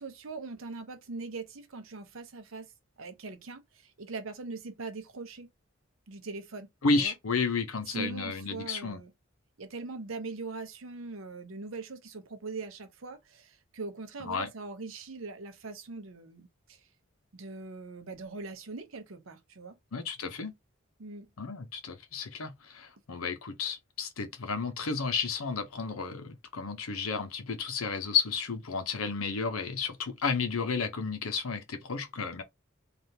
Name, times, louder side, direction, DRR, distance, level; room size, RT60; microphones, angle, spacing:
voice 1, 0.0-2.7 3.0-5.5 6.1-6.7 6.9-7.1 7.9-9.1 9.6-16.8 17.3-19.8 21.0-21.3, right 3 dB, 75° right, 0.7 m, -41 dB
voice 2, 6.8-9.0 14.2-14.5 19.9-20.5 21.4-32.4, left 4 dB, 90° left, 0.7 m, -32 dB
3.4 x 2.4 x 2.7 m
head